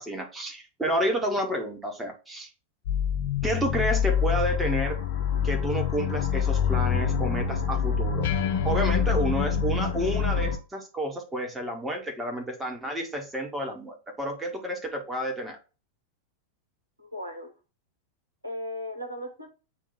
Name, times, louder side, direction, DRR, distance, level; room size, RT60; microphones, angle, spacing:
voice 1, 0.0-2.5 3.4-5.0 5.4-8.3 8.6-15.6, right 1 dB, 10° right, 2 dB, 1.6 m, -30 dB
sound 1, 2.9-10.6, left 7 dB, 50° left, 1.0 m, -26 dB
voice 2, 17.0-17.5 18.4-19.5, left 1 dB, 85° right, 3 dB, 1.4 m, -36 dB
8.1 x 2.9 x 4.2 m, 0.33 s
figure-of-eight pair, 90°, 0 cm